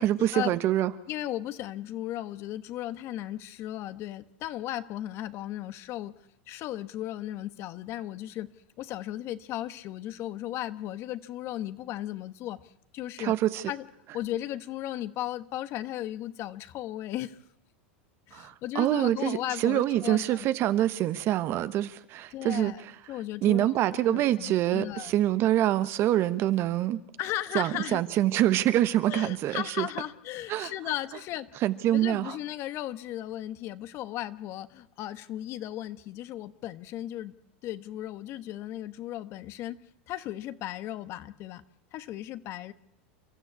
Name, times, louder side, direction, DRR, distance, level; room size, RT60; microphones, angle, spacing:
voice 1, 0.0-0.9 13.2-13.6 18.3-22.9 23.4-27.0 27.5-29.9 30.5-30.7 31.6-32.4, right 13 dB, 45° right, 13 dB, 1.1 m, -25 dB
voice 2, 1.1-6.1 6.5-8.5 8.8-12.6 12.9-13.3 13.7-13.8 14.1-17.4 18.3-20.5 22.3-22.8 23.1-23.7 24.1-25.1 27.2-28.0 29.1-31.5 31.9-37.4 37.6-39.8 40.1-41.6 41.9-42.7, left 13 dB, 45° left, 12 dB, 1.2 m, -36 dB
29.5 x 13.0 x 8.4 m, 0.80 s
hypercardioid pair, 115°, 6 cm